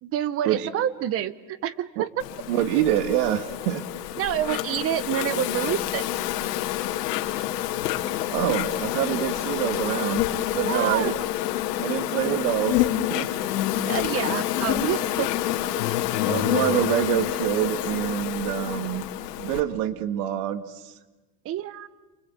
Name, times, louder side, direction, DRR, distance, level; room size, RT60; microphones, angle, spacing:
voice 1, 0.0-2.1 4.2-6.0 10.7-11.1 13.9-15.3 21.4-21.9, right 11 dB, 30° right, 18 dB, 0.8 m, -27 dB
Insect, 2.2-19.6, left 13 dB, 85° left, 2.4 m, -28 dB
voice 2, 2.5-3.8 8.0-10.2 10.5-11.2 11.8-13.3 16.2-19.1 19.4-20.9, right 12 dB, 70° right, 13 dB, 1.7 m, -26 dB
29.0 x 24.0 x 8.4 m, 1.2 s
supercardioid pair, 155°, 47 cm